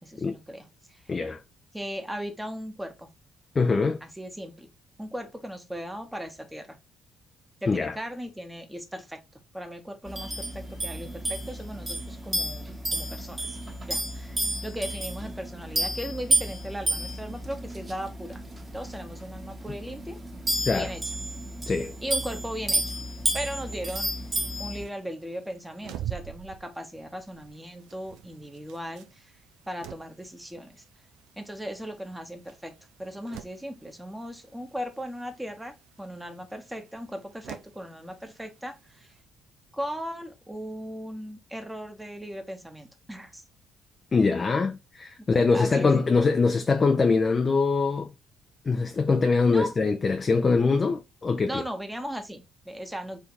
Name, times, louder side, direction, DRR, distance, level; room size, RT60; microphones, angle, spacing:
voice 1, 0.0-1.0 1.7-3.1 4.0-4.7 5.0-6.8 7.6-9.2 9.5-13.6 13.9-18.4 18.7-20.2 20.6-21.1 22.0-22.9 23.3-24.1 24.6-29.3 29.7-30.8 31.4-32.7 33.0-39.1 39.7-43.4 45.2-46.2 49.5-49.8 51.5-53.2, equal, 5° right, 1.0 m, -37 dB
voice 2, 1.1-1.4 3.6-4.0 7.7-7.9 20.7-20.9 21.7-21.9 44.1-48.1 48.7-51.6, left 4 dB, 35° left, 0.5 m, -23 dB
sound 1, 10.1-24.9, right 1 dB, 30° right, 1.4 m, -31 dB
sound 2, 23.7-39.2, right 11 dB, 65° right, 0.5 m, -46 dB
4.2 x 2.9 x 3.6 m
figure-of-eight pair, 45°, 0 cm